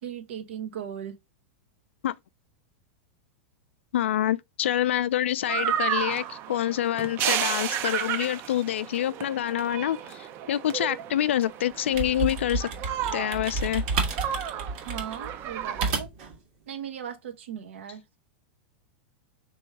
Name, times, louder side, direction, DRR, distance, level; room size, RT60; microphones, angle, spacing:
voice 1, 0.0-1.2 14.8-16.1 16.7-18.2, right 9 dB, 80° right, 1.1 m, -37 dB
voice 2, 3.9-12.7 13.1-13.8, left 11 dB, 90° left, 0.4 m, -27 dB
sound 1, 5.5-15.9, right 10 dB, 35° right, 0.5 m, -32 dB
sound 2, 11.7-16.3, right 4 dB, 55° right, 1.6 m, -31 dB
3.5 x 3.1 x 4.6 m
supercardioid pair, 135°, 6 cm